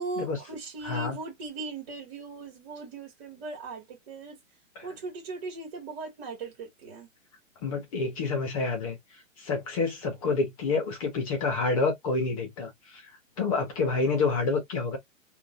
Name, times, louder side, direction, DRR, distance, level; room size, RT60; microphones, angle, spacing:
voice 1, 0.0-4.4 4.8-7.1, right 3 dB, 25° right, 2.2 m, -38 dB
voice 2, 0.8-1.2 4.7-4.9 7.6-9.0 9.4-13.0 13.4-15.0, left 4 dB, 25° left, 1.5 m, -28 dB
3.8 x 2.8 x 2.5 m
hypercardioid pair, 170°, 40 cm